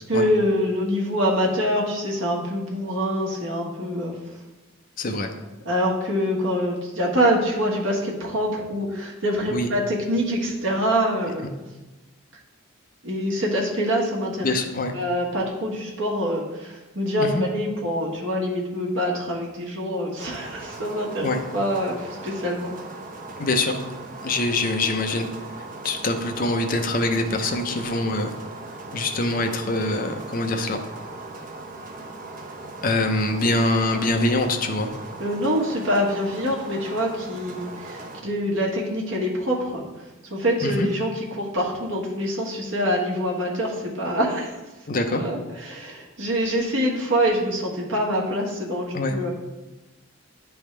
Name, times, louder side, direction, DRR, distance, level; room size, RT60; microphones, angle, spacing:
voice 1, 0.1-4.2 5.6-11.5 13.0-14.5 14.9-21.3 21.5-22.7 35.2-39.9 40.3-44.6 45.1-49.3, equal, 65° right, -2 dB, 1.3 m, -25 dB
voice 2, 5.0-5.3 9.5-9.7 14.4-14.9 17.2-17.4 21.2-21.4 23.4-23.8 24.2-25.3 25.8-28.3 28.9-30.8 32.8-34.9 40.6-40.9 44.9-45.2 48.9-49.1, left 2 dB, 40° left, 5 dB, 0.5 m, -24 dB
sound 1, 20.2-38.2, right 2 dB, 40° right, 0.6 m, -39 dB
10.5 x 3.5 x 3.2 m, 1.1 s
head